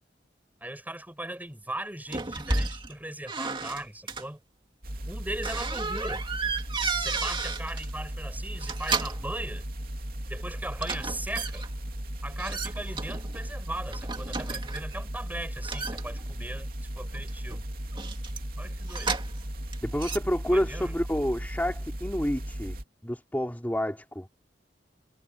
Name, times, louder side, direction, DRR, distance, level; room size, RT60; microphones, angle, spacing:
voice 1, 0.6-4.4 5.1-6.2 7.0-9.7 10.3-11.7 12.2-17.7 18.6-19.2 20.5-20.9, right 1 dB, 10° right, 7.9 m, -38 dB
sound 1, 2.1-2.9 3.3-4.3 5.4-7.9 8.5-9.3 10.8-11.7 12.4-13.5 13.9-15.0 15.6-16.6 17.1-19.5 19.7-20.2, right 4 dB, 30° right, 2.4 m, -33 dB
sound 2, 4.8-22.8, equal, 55° right, 2.8 m, -36 dB
voice 2, 19.8-22.8 23.0-24.3, equal, 10° left, 3.5 m, -29 dB
head